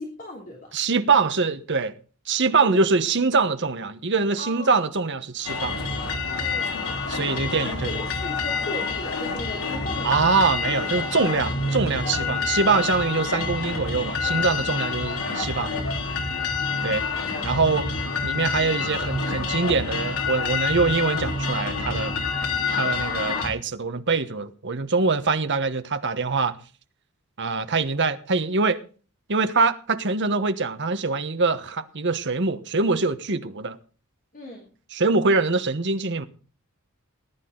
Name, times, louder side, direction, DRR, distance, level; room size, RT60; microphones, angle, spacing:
voice 1, 0.0-0.7 2.6-2.8 4.4-4.9 6.4-6.9 7.4-10.3 10.9-11.2 12.0-12.6 14.2-14.6 23.0-23.3 34.3-34.7, left 1 dB, 40° left, 3.0 m, -37 dB
voice 2, 0.7-1.9 2.3-5.8 7.1-8.0 10.0-15.7 16.8-17.0 17.4-17.9 18.2-22.2 22.7-26.5 27.4-28.8 29.3-33.8 34.9-36.3, right 4 dB, 55° right, 1.2 m, -24 dB
sound 1, 5.4-23.5, left 4 dB, 80° left, 3.4 m, -27 dB
19.5 x 10.5 x 3.9 m
head